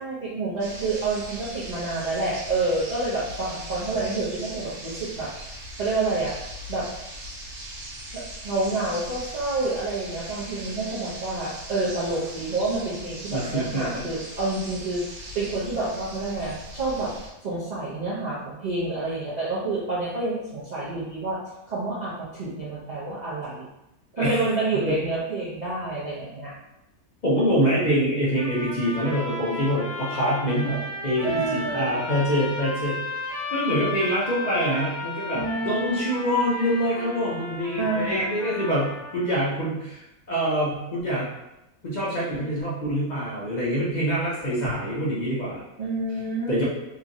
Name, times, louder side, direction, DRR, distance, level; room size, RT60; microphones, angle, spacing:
voice 1, 0.0-5.3 5.8-6.3 6.7-6.9 8.1-15.0 15.3-17.1 17.4-21.4 21.7-23.7 24.1-26.5 31.2-32.0 35.3-36.0 37.8-38.3 45.8-46.5, right 3 dB, 60° right, -9 dB, 0.4 m, -28 dB
sound 1, 0.6-17.3, right 1 dB, 80° right, 1.2 m, -39 dB
voice 2, 13.3-14.0 24.2-24.4 24.9-25.0 27.2-41.3 41.8-45.6 46.5-46.6, equal, 55° left, -7 dB, 0.5 m, -25 dB
sound 2, 28.4-39.4, left 2 dB, 80° left, 1.2 m, -34 dB
2.9 x 2.5 x 2.6 m, 0.90 s
omnidirectional pair, 1.5 m